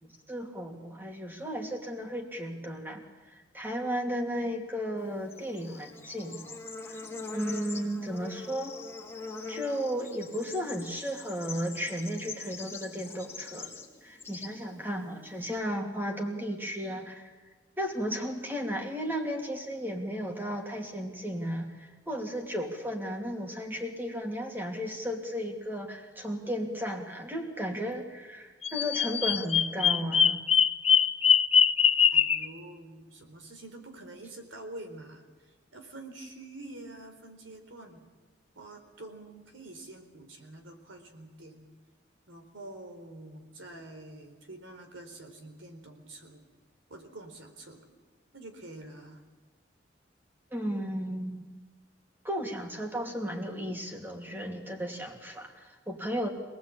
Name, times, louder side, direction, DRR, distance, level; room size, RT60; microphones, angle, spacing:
voice 1, 0.0-6.6 6.9-7.0 7.3-8.8 9.5-13.7 14.0-17.3 17.8-30.4 50.5-51.6 52.2-56.3, equal, 10° right, 2 dB, 2.8 m, -34 dB
Bird / Insect, 5.0-15.6, left 4 dB, 15° left, 2.4 m, -43 dB
Bird vocalization bird call bird song, 28.6-32.5, left 7 dB, 30° left, 0.7 m, -22 dB
voice 2, 32.1-35.2 35.7-38.0 38.6-41.7 42.3-46.4 46.9-47.8 48.3-49.2, right 2 dB, 85° right, 5 dB, 4.2 m, -46 dB
26.0 x 19.5 x 8.7 m, 1.3 s
head